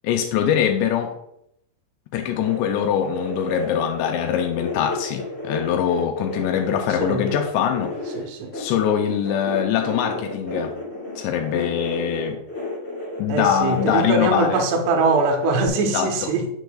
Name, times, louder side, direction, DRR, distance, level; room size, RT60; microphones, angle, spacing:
voice 1, 0.0-1.2 2.1-7.9 8.5-10.7 11.2-12.4 13.2-14.6 15.9-16.3, left 9 dB, 85° left, 2.6 m, -23 dB
sound 1, 2.4-15.7, left 2 dB, 25° left, 1.3 m, -31 dB
voice 2, 8.1-8.5 13.3-16.5, right 3 dB, 75° right, 2.7 m, -22 dB
7.8 x 7.0 x 2.3 m
omnidirectional pair, 5.4 m